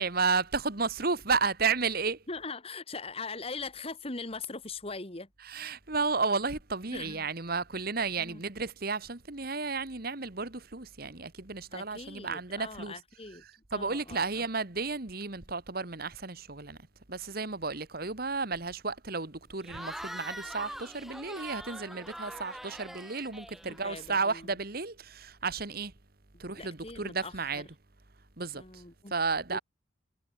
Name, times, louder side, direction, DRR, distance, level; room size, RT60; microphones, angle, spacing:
voice 1, 0.0-2.2 5.4-13.0 13.4-16.8 17.1-25.9 26.4-27.7 28.4-28.8 29.1-29.6, right 4 dB, 50° right, 1.8 m, -32 dB
voice 2, 2.3-5.3 6.9-7.3 8.2-8.4 11.7-13.4 13.7-14.2 23.6-24.5 26.3-27.6 28.5-29.1 29.5-29.6, left 3 dB, 30° left, 2.0 m, -41 dB
Cheering / Crowd, 19.6-24.3, equal, ahead, 0.9 m, -43 dB
head